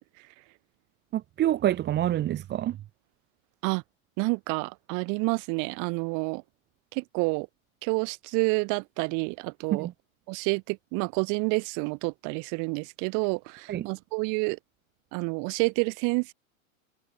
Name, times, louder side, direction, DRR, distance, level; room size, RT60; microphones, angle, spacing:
voice 1, 1.1-2.8 9.7-9.9 13.7-13.9, right 12 dB, 25° right, 1.3 m, -27 dB
voice 2, 4.2-6.4 6.9-7.5 7.8-9.9 10.3-14.6 15.1-16.3, right 33 dB, 50° right, 6.0 m, -29 dB
hypercardioid pair, 130°, 40 cm